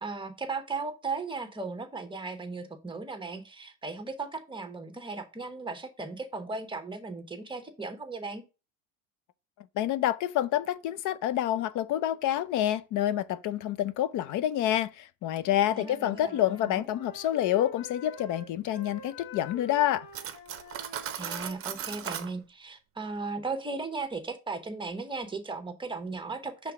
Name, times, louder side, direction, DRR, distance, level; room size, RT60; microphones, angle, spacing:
voice 1, 0.0-8.4 15.7-16.9 21.2-26.7, right 3 dB, 15° right, 1.0 m, -36 dB
voice 2, 9.8-20.1, left 12 dB, 55° left, 0.6 m, -28 dB
Wind instrument woodwind instrument, 15.3-22.1, left 6 dB, 85° left, 1.5 m, -47 dB
Cutlery silverware, 20.1-22.3, right 9 dB, 35° right, 0.8 m, -37 dB
5.7 x 3.5 x 5.0 m
cardioid pair, 120°, 37 cm